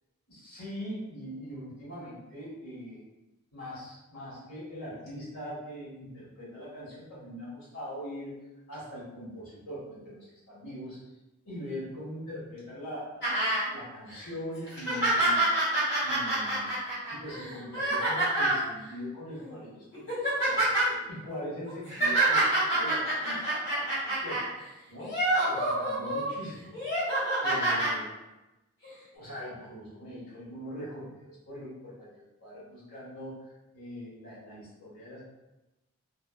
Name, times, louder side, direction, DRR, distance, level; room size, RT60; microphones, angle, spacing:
voice 1, 0.3-3.0 3.5-8.3 8.7-11.0 11.4-15.5 16.0-16.7 17.1-20.1 20.3-24.4 24.9-25.2 25.5-26.6 27.4-28.1 29.1-33.4 33.7-35.2, equal, 80° left, -9 dB, 1.4 m, -41 dB
sound 1, 13.2-13.6 14.1-14.2 14.7-18.6 19.4-19.6 19.9-20.9 21.7-24.5 25.0-26.3 26.7-27.9 28.8-28.9, right 2 dB, 50° left, 1.4 m, -27 dB
2.7 x 2.1 x 2.3 m, 1.0 s
head